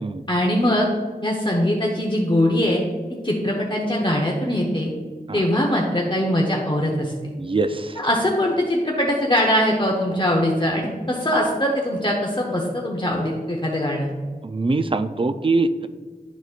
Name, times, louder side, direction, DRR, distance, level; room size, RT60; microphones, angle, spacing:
voice 1, 0.3-0.9 1.2-2.8 3.2-4.9 5.3-7.1 8.0-14.1, left 1 dB, 30° left, -2 dB, 0.9 m, -21 dB
voice 2, 7.4-8.0 14.4-15.9, right 3 dB, 35° right, 10 dB, 0.4 m, -23 dB
11.5 x 4.1 x 2.5 m, 1.5 s
wide cardioid pair, 45°, 16 cm